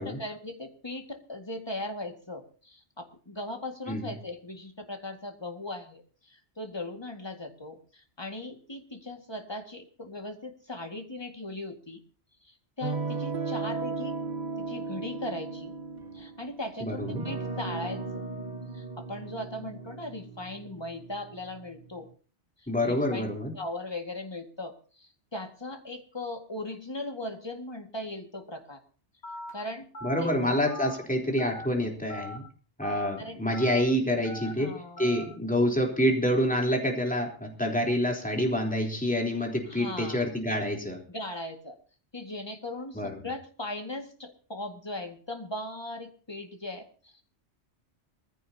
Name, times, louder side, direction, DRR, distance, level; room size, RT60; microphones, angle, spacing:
voice 1, 0.0-12.0 12.4-14.2 14.7-15.7 16.1-18.2 18.7-22.1 22.6-28.8 29.5-29.9 30.2-30.5 33.2-33.4 33.8-35.1 39.7-40.3 41.1-41.8 42.1-47.2, left 1 dB, 20° left, 4 dB, 2.1 m, -39 dB
sound 1, 12.8-22.0, right 4 dB, 40° right, 1.5 m, -36 dB
voice 2, 16.8-17.3 22.7-23.5 30.0-32.4 32.8-41.0 42.9-43.1, equal, 5° left, 1 dB, 3.7 m, -27 dB
Telephone, 29.2-29.5 29.9-30.2 30.7-30.9 31.4-31.7 32.1-32.4 32.8-33.1 33.5-33.8 34.3-34.5 35.0-35.2, left 2 dB, 80° left, 8.2 m, -40 dB
22.0 x 15.0 x 2.9 m, 0.40 s
omnidirectional pair, 1.2 m